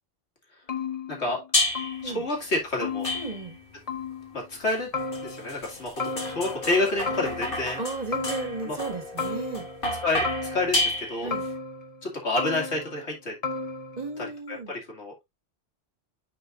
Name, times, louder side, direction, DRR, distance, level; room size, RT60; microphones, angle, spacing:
sound 1, 0.7-1.5 1.7-2.4 2.8-3.6 3.9-4.5 4.9-5.7 6.0-6.7 7.1-7.8 8.1-8.9 9.2-9.9 10.2-11.0 11.3-12.0 12.4-13.1 13.4-14.2, left 4 dB, 35° left, 0.9 m, -34 dB
voice 1, 1.1-1.4 2.0-3.1 4.3-4.9 5.2-7.8 8.6-8.8 10.0-11.3 12.0-13.3 14.2-15.1, left 2 dB, 85° left, 2.5 m, -29 dB
sound 2, 1.5-2.1 3.0-3.7 4.7-11.5, left 1 dB, 50° left, 2.4 m, -31 dB
voice 2, 3.1-3.6 7.8-9.7 11.2-11.4 14.0-14.7, right 3 dB, 35° right, 1.6 m, -34 dB
9.8 x 4.6 x 2.5 m
omnidirectional pair, 1.1 m